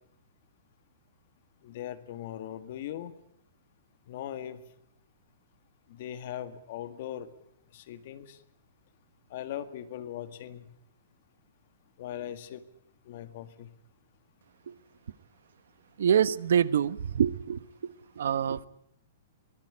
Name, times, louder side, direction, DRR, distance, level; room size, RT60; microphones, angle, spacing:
voice 1, 1.6-3.1 4.1-4.6 5.9-7.3 7.7-8.4 9.3-10.7 12.0-12.6 13.1-13.7, left 11 dB, 45° left, 12 dB, 1.9 m, -39 dB
voice 2, 16.0-17.6 18.2-18.7, right 8 dB, 75° right, 17 dB, 1.1 m, -25 dB
24.0 x 18.0 x 9.9 m, 0.76 s
hypercardioid pair, 165°, 0 cm